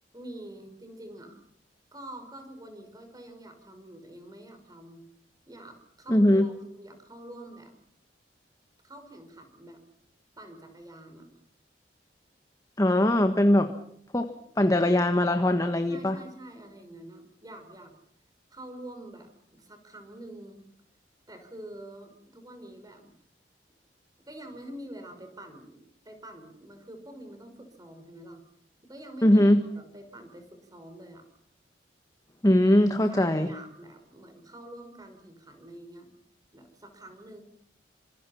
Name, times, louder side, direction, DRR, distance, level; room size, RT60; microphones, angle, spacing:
voice 1, 0.1-1.4 1.9-5.0 5.5-7.7 8.8-9.8 10.4-11.3 14.5-14.6 15.9-17.9 18.5-20.6 21.3-23.1 24.2-28.4 28.8-31.3 33.0-36.1 36.5-37.4, right 1 dB, 20° right, 6 dB, 5.4 m, -46 dB
voice 2, 6.1-6.5 12.8-13.7 14.1-14.3 14.6-16.2 29.2-29.6 32.4-33.5, left 1 dB, 20° left, 7 dB, 1.4 m, -21 dB
27.0 x 26.0 x 5.8 m, 0.67 s
head